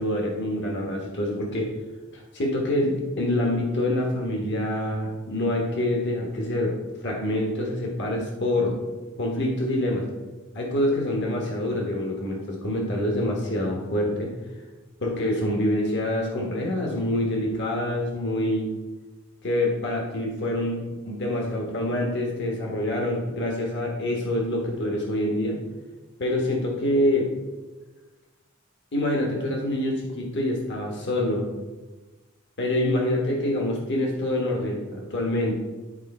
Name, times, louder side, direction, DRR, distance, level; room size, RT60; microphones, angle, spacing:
voice 1, 0.0-1.7 2.1-6.7 7.0-8.8 9.2-10.1 10.5-14.3 15.0-18.7 19.4-25.6 26.2-27.3 28.9-31.5 32.6-35.6, left 1 dB, 55° left, 0 dB, 1.3 m, -26 dB
10.5 x 4.4 x 4.3 m, 1.2 s
head